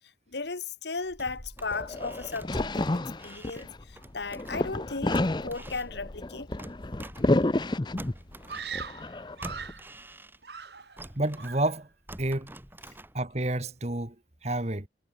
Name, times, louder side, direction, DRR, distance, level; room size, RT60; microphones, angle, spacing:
voice 1, 0.3-6.5, left 4 dB, 70° left, 1.3 m, -36 dB
sound 1, 1.0-4.8 5.1-7.7 8.0-10.6 11.0-13.5 13.8-13.9, right 1 dB, 10° right, 2.5 m, -45 dB
sound 2, 1.6-3.9 4.3-8.3 8.7-9.7, left 2 dB, 25° left, 0.6 m, -30 dB
Screaming, 8.5-9.9 10.4-11.1 11.4-11.8, right 6 dB, 65° right, 3.3 m, -40 dB
voice 2, 11.1-11.9 12.2-12.5 13.1-14.1 14.4-14.9, right 1 dB, 35° right, 1.7 m, -29 dB
head